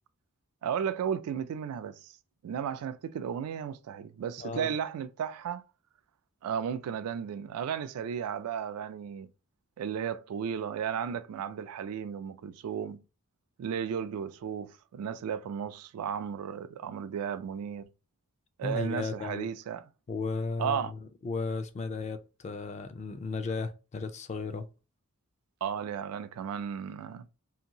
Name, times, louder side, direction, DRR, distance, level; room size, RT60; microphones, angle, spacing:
voice 1, 0.6-2.1 2.4-5.6 6.4-9.3 9.8-13.0 13.6-17.9 18.6-19.9 20.6-20.9 25.6-27.2, right 8 dB, 75° right, 0.3 m, -34 dB
voice 2, 4.4-4.7 18.6-19.5 20.1-24.7, left 4 dB, 30° left, 0.3 m, -35 dB
2.8 x 2.5 x 2.7 m
head